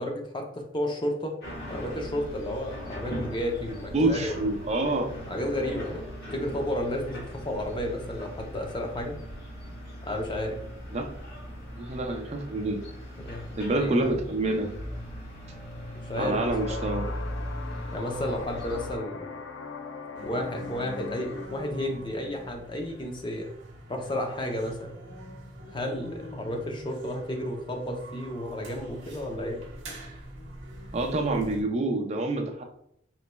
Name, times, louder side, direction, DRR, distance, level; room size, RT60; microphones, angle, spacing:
voice 1, 0.0-1.4 1.7-4.5 5.3-6.0 6.3-9.2 10.0-10.6 13.2-14.0 16.1-16.8 17.9-19.3 20.2-23.5 23.9-24.9 25.7-29.6, left 1 dB, 25° left, 2 dB, 0.5 m, -32 dB
sound 1, 1.4-19.0, equal, 55° left, 1.3 m, -39 dB
voice 2, 3.9-5.1 10.9-11.1 11.8-12.8 13.6-14.8 16.2-17.0 30.9-32.6, right 2 dB, 35° right, 2 dB, 0.5 m, -27 dB
sound 2, 16.3-21.5, left 4 dB, 85° left, 0.4 m, -40 dB
sound 3, 20.1-31.6, equal, 85° right, 0.8 m, -44 dB
4.1 x 3.1 x 2.2 m, 0.71 s
head